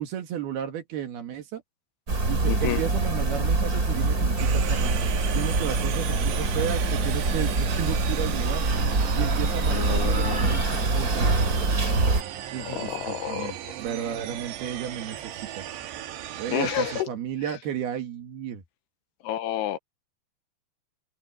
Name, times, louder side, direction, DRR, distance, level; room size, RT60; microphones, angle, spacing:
voice 1, 0.0-1.6 2.3-4.9 5.3-8.6 9.1-11.3 12.5-15.6 16.4-18.6, right 9 dB, 65° right, 3.7 m, -33 dB
sound 1, 2.1-12.2, right 3 dB, 25° right, 3.1 m, -24 dB
voice 2, 2.4-2.8 9.6-10.6 12.6-13.5 16.5-17.1 19.2-19.8, left 12 dB, 75° left, 2.9 m, -30 dB
sound 2, 4.4-17.0, right 12 dB, 85° right, 3.6 m, -36 dB
omnidirectional pair, 4.9 m